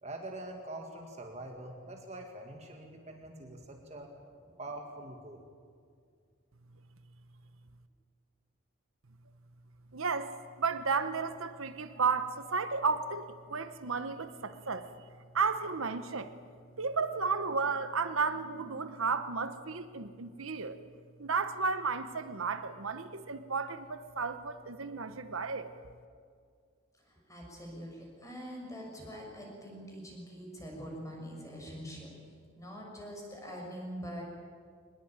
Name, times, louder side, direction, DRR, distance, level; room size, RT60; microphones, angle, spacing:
voice 1, 0.0-4.1 4.6-5.5, right 2 dB, 30° right, 2 dB, 2.2 m, -44 dB
voice 2, 9.9-14.9 15.3-16.3 16.8-20.8 21.2-25.7, right 4 dB, 80° right, 10 dB, 1.2 m, -33 dB
voice 3, 27.0-32.1 32.6-34.3, equal, 15° left, -1 dB, 6.6 m, -44 dB
24.0 x 20.5 x 9.0 m, 2.1 s
head